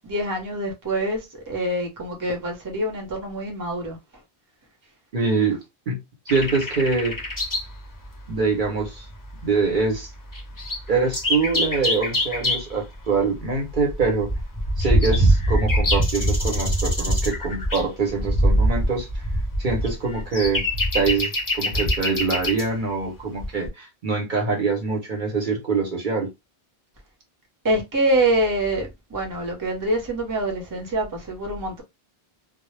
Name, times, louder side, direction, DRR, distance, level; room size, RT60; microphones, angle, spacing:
voice 1, 0.0-4.0 27.6-31.8, right 1 dB, 20° right, 0.7 m, -25 dB
voice 2, 5.1-6.0 6.3-7.2 8.3-9.1 9.4-10.1 10.9-14.3 14.8-19.2 19.6-20.7 20.9-26.3, right 4 dB, 55° right, 0.8 m, -24 dB
sound 1, 6.3-7.7 8.0-8.1 8.8-8.9 9.1-9.4 9.9-10.0 10.3-12.7 13.4-22.7 23.4-23.7, equal, 25° left, 0.5 m, -23 dB
2.0 x 2.0 x 3.1 m
omnidirectional pair, 1.1 m